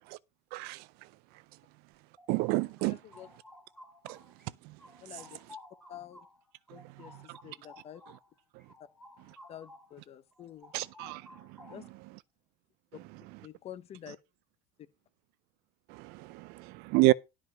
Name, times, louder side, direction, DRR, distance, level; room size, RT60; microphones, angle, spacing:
voice 1, 0.5-0.8 2.3-3.0 4.1-4.2 4.6-4.7 7.3-7.4 10.7-11.2 11.6-11.7 15.9-17.1, right 22 dB, 50° right, 0.5 m, -29 dB
sound 1, 1.9-4.5 4.8-10.0 10.3-12.0, left 2 dB, ahead, 2.7 m, -55 dB
voice 2, 2.9-3.3 5.0-5.4 5.9-6.3 6.7-8.0 9.5-10.7 11.7-11.9 13.4-14.2 14.8-14.9, left 10 dB, 30° left, 1.0 m, -48 dB
12.0 x 4.9 x 6.0 m
supercardioid pair, 145°, 21 cm